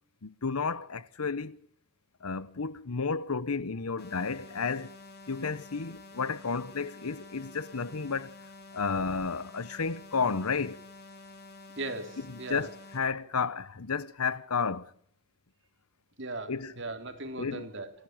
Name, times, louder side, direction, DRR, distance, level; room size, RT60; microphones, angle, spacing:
voice 1, 0.2-1.6 2.2-4.9 5.3-8.3 8.7-10.8 12.5-14.9 16.5-16.7 17.4-17.7, left 5 dB, 90° left, 1.0 m, -32 dB
sound 1, 4.0-13.0, left 2 dB, 45° left, 3.6 m, -49 dB
voice 2, 11.8-12.7 16.2-17.9, right 2 dB, 55° right, 3.1 m, -38 dB
28.0 x 11.5 x 8.8 m
head